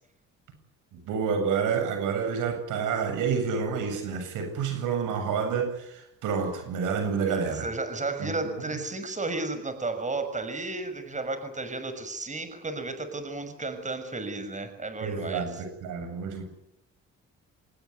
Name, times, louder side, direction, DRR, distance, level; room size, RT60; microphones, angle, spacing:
voice 1, 0.9-7.7 8.2-8.5 15.0-16.4, right 6 dB, 90° right, 6 dB, 7.9 m, -29 dB
voice 2, 7.2-15.6, right 3 dB, 25° right, 9 dB, 6.4 m, -33 dB
26.0 x 19.5 x 9.7 m, 0.81 s
cardioid pair, 90°, 30 cm